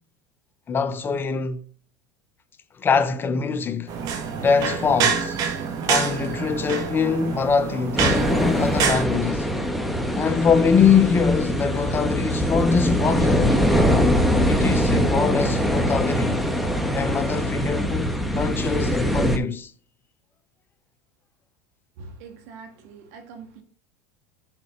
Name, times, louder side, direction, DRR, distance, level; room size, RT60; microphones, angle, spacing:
voice 1, 0.7-1.6 2.8-3.9 4.4-5.4 5.9-9.6 10.1-13.6 14.4-16.4 16.9-19.7, left 6 dB, 25° left, 0.7 m, -23 dB
sound 1, 3.9-9.0, right 6 dB, 50° right, 1.7 m, -26 dB
sound 2, 8.0-19.4, equal, ahead, 1.2 m, -22 dB
voice 2, 22.0-23.6, right 4 dB, 70° right, 1.9 m, -43 dB
7.2 x 4.1 x 5.0 m
supercardioid pair, 105°, 8 cm